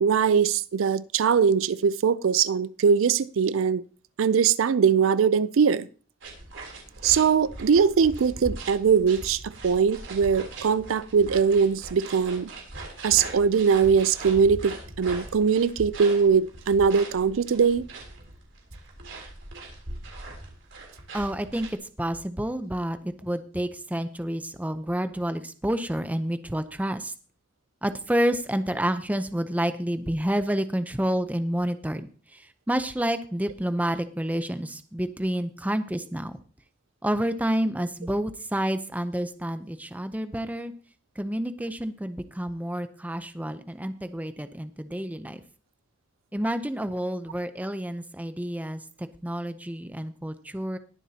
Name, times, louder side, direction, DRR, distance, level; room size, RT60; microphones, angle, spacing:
voice 1, 0.0-3.8 4.2-5.9 7.0-12.5 13.0-17.8, right 6 dB, 90° right, 0.4 m, -21 dB
sound 1, 6.2-21.7, right 2 dB, 70° right, 3.3 m, -40 dB
voice 2, 21.1-21.7 22.0-27.1 27.8-36.4 37.0-40.7 41.2-45.4 46.3-50.8, right 1 dB, 10° right, 0.6 m, -29 dB
20.5 x 7.1 x 2.8 m
head